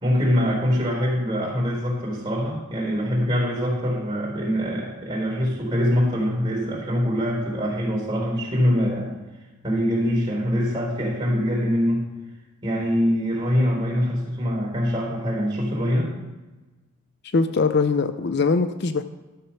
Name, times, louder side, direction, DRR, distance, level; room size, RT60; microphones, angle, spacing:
voice 1, 0.0-9.2 9.6-12.1 12.6-16.1, equal, 20° right, -2 dB, 3.9 m, -23 dB
voice 2, 17.3-19.0, left 4 dB, 50° left, 10 dB, 0.5 m, -21 dB
12.5 x 7.1 x 5.7 m, 1.2 s
head